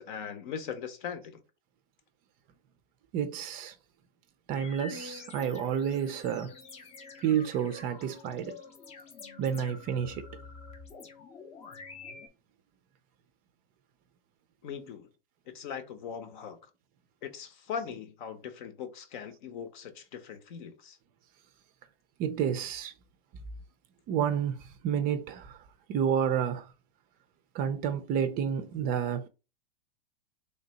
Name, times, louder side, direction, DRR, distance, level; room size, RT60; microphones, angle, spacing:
voice 1, 0.0-1.4 14.6-15.1 15.5-16.6 17.2-21.0, left 7 dB, 55° left, 0.9 m, -40 dB
voice 2, 3.1-3.7 4.5-6.5 7.2-8.6 9.4-10.3 22.2-22.9 24.1-25.6 25.9-26.7 27.5-29.3, right 8 dB, 30° right, 0.4 m, -30 dB
sound 1, 4.6-12.3, left 4 dB, 20° left, 0.6 m, -47 dB
3.4 x 2.7 x 3.9 m
hypercardioid pair, 115°, 29 cm